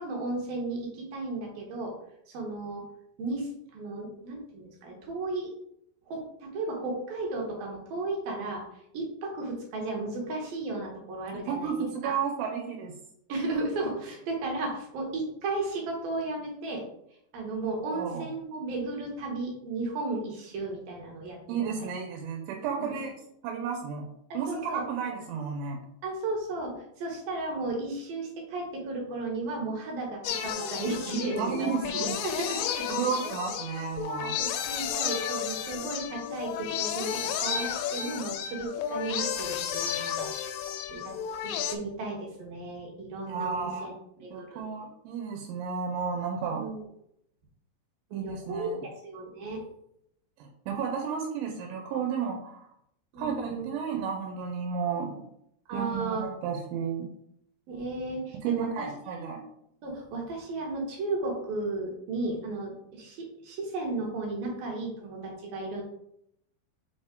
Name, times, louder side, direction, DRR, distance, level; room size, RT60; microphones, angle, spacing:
voice 1, 0.0-1.9 2.3-2.8 3.2-5.5 6.1-8.6 8.9-11.7 12.0-12.1 13.3-16.8 17.3-21.9 22.9-23.0 24.5-24.8 26.0-31.7 32.0-32.9 34.3-40.3 40.9-41.1 41.4-43.9 44.2-44.6 46.5-46.8 48.1-48.7 49.0-49.6 53.1-53.7 55.7-56.2 57.7-58.9 59.1-59.5 59.8-65.8, right 2 dB, 65° right, -1 dB, 2.6 m, -34 dB
voice 2, 11.4-12.9 17.9-18.3 21.5-23.1 23.4-24.1 24.3-25.8 31.4-32.2 32.9-34.4 43.3-43.9 44.3-46.7 48.1-48.8 50.4-52.7 53.2-55.1 55.7-57.1 58.4-59.4, right 6 dB, 90° right, 2 dB, 3.2 m, -32 dB
sound 1, 30.2-41.8, left 9 dB, 85° left, 2.2 m, -32 dB
6.5 x 4.3 x 3.8 m, 0.74 s
omnidirectional pair, 5.3 m